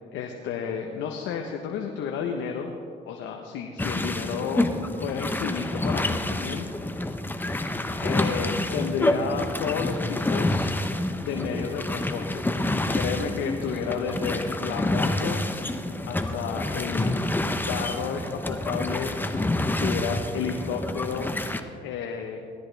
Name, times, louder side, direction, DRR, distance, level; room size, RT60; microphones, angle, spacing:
voice 1, 0.1-2.7 3.1-6.7 7.2-7.6 8.0-10.7 11.2-12.5 12.9-15.5 16.1-17.2 17.7-19.1 19.8-21.3 21.8-22.5, left 6 dB, 85° left, 2 dB, 1.0 m, -31 dB
sound 1, 3.8-21.6, left 1 dB, 10° left, 0.9 m, -28 dB
17.5 x 13.0 x 3.4 m, 2.3 s
cardioid pair, 85°, 19 cm